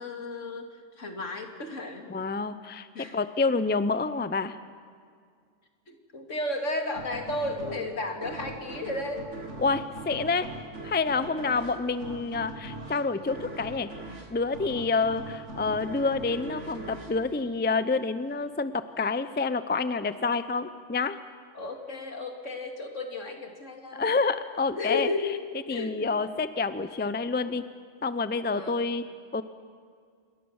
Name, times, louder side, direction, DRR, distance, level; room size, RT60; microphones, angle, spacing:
voice 1, 0.0-2.1 2.9-3.2 5.9-9.3 11.3-11.7 21.5-24.2 24.8-26.2 28.5-28.8, left 2 dB, 70° left, 4 dB, 2.7 m, -34 dB
voice 2, 2.1-4.6 9.6-10.5 10.8-13.9 14.3-21.2 23.9-25.1 25.7-27.6 28.0-29.0 29.3-29.4, left 4 dB, 10° left, 12 dB, 0.5 m, -28 dB
sound 1, 6.9-18.2, right 2 dB, 70° right, 2.4 m, -42 dB
27.0 x 22.0 x 7.2 m, 2.1 s
omnidirectional pair, 1.3 m